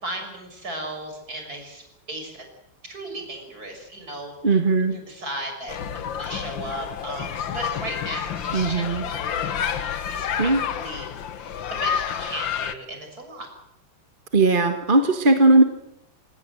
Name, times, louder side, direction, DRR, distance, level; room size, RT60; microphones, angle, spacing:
voice 1, 0.0-2.4 2.8-4.6 4.9-13.5, right 1 dB, 40° right, 4 dB, 6.8 m, -36 dB
voice 2, 4.4-4.9 8.5-9.0 10.4-10.6 14.3-15.6, right 2 dB, 25° right, 6 dB, 1.5 m, -18 dB
sound 1, 5.7-12.7, left 8 dB, 60° left, 1.8 m, -29 dB
27.0 x 19.0 x 7.9 m, 0.82 s
omnidirectional pair, 2.4 m